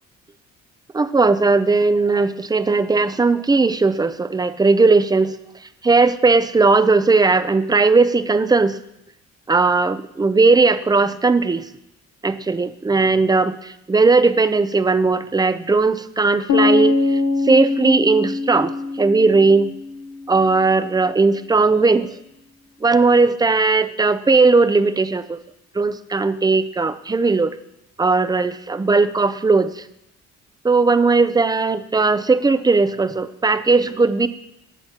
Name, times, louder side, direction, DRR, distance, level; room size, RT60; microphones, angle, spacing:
voice 1, 0.9-5.4 5.8-8.8 9.5-11.7 12.2-19.7 20.3-22.1 22.8-25.4 25.7-27.6 28.0-29.8 30.6-34.3, right 3 dB, 15° right, 13 dB, 0.5 m, -17 dB
sound 1, 16.5-20.4, left 3 dB, 65° left, 1.1 m, -22 dB
19.0 x 7.8 x 2.9 m, 0.83 s
cardioid pair, 90°, 30 cm